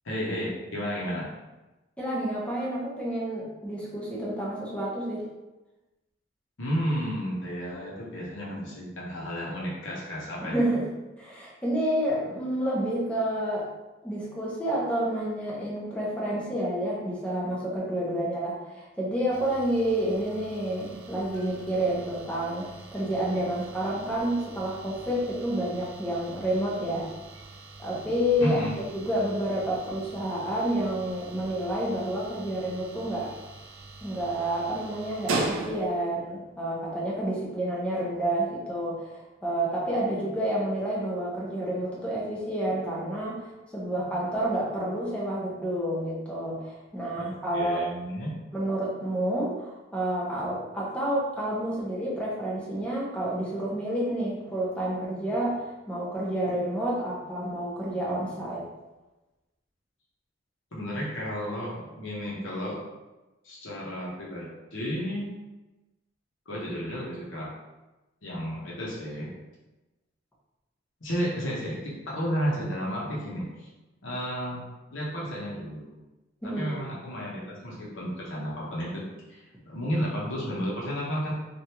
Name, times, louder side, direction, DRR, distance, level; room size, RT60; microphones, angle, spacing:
voice 1, 0.0-1.3 6.6-10.6 28.4-28.7 47.2-47.3 47.5-48.3 60.7-62.8 63.4-65.3 66.5-67.5 68.2-69.3 71.0-73.7 74.0-74.6 74.9-75.9 76.6-81.3, equal, 70° left, -6 dB, 1.0 m, -32 dB
voice 2, 2.0-5.2 10.4-13.7 14.0-27.1 27.8-33.3 34.0-47.9 48.5-55.6 55.9-58.7 76.4-76.8, right 1 dB, 5° left, -5 dB, 0.8 m, -29 dB
sound 1, 19.3-36.2, right 3 dB, 85° right, 0.5 m, -40 dB
3.3 x 2.5 x 2.9 m, 1.1 s
head